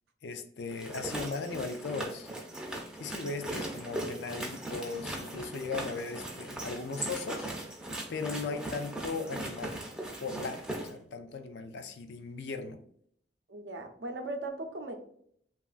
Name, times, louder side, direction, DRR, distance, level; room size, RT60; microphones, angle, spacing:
voice 1, 0.2-2.3 3.0-7.5 8.1-9.8 10.2-12.8, left 4 dB, 70° left, 8 dB, 0.4 m, -37 dB
sound 1, 0.7-10.9, right 1 dB, 5° right, 0.4 m, -39 dB
voice 2, 13.5-15.1, right 2 dB, 80° right, 5 dB, 0.5 m, -38 dB
3.0 x 2.4 x 2.4 m, 0.66 s
head